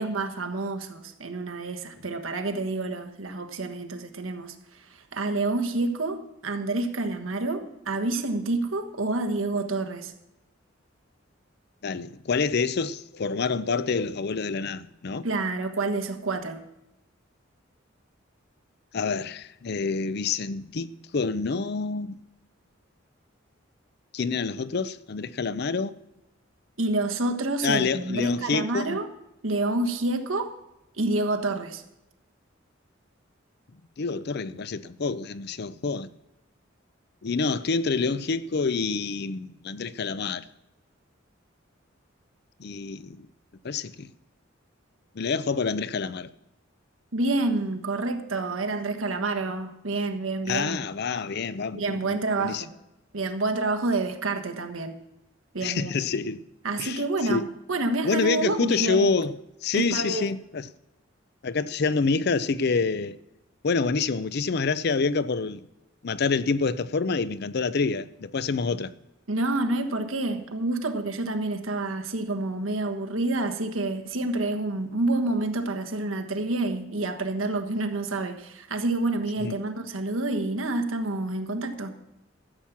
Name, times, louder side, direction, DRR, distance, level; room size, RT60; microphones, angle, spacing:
voice 1, 0.0-10.1 15.2-16.6 26.8-29.1 29.4-30.5 31.0-31.8 47.1-50.9 51.7-52.7 53.1-54.9 55.5-55.9 56.6-57.4 57.7-59.1 59.7-60.2 69.3-82.0, right 2 dB, 90° right, 1.3 m, -28 dB
voice 2, 11.8-15.3 18.9-22.2 24.1-26.0 27.6-29.0 34.0-36.1 37.2-40.4 42.6-43.3 43.6-44.1 45.2-46.3 50.5-52.6 55.6-56.4 56.8-57.0 57.3-57.5 58.0-60.7 61.4-63.2 63.6-65.6 66.0-68.9 79.4-79.6, left 4 dB, 55° left, 0.5 m, -27 dB
13.5 x 7.4 x 7.2 m
head